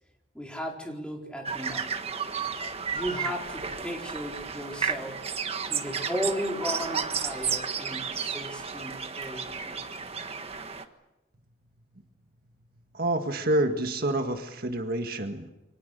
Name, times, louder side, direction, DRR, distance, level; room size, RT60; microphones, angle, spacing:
voice 1, 0.3-1.9 2.9-9.8, equal, 5° left, 0 dB, 4.4 m, -35 dB
sound 1, 1.4-10.8, right 6 dB, 35° right, 1.5 m, -33 dB
voice 2, 12.9-15.5, right 1 dB, 55° right, 5 dB, 1.8 m, -28 dB
29.0 x 24.5 x 6.8 m, 0.95 s
head